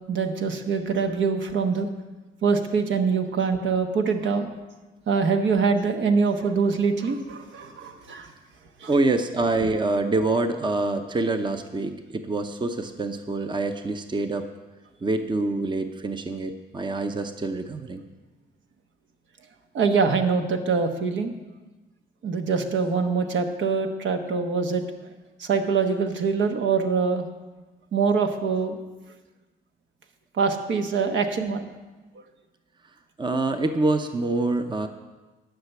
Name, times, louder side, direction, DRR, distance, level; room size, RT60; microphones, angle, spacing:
voice 1, 0.1-1.9 2.4-4.5 5.1-8.3 8.8-8.9 19.7-21.3 22.2-24.8 25.4-27.3 27.9-28.8 30.4-31.6, right 5 dB, 70° right, 5 dB, 1.2 m, -24 dB
voice 2, 8.9-14.5 15.0-18.0 33.2-34.9, right 2 dB, 25° right, 7 dB, 0.8 m, -26 dB
11.5 x 5.9 x 8.2 m, 1.2 s
cardioid pair, 90°, 20 cm